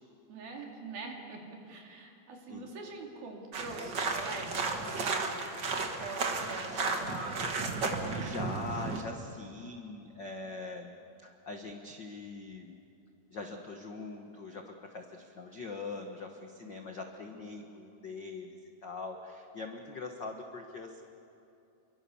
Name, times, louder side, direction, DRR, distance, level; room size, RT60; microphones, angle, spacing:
voice 1, 0.3-5.5 6.0-7.4 16.6-17.0, right 3 dB, 75° right, 1 dB, 4.7 m, -44 dB
sound 1, 3.5-9.0, right 4 dB, 45° right, 1.6 m, -33 dB
voice 2, 8.2-10.9 11.2-12.8 13.3-21.0, left 3 dB, 75° left, 4 dB, 1.0 m, -42 dB
29.5 x 24.0 x 7.1 m, 2.7 s
omnidirectional pair, 4.3 m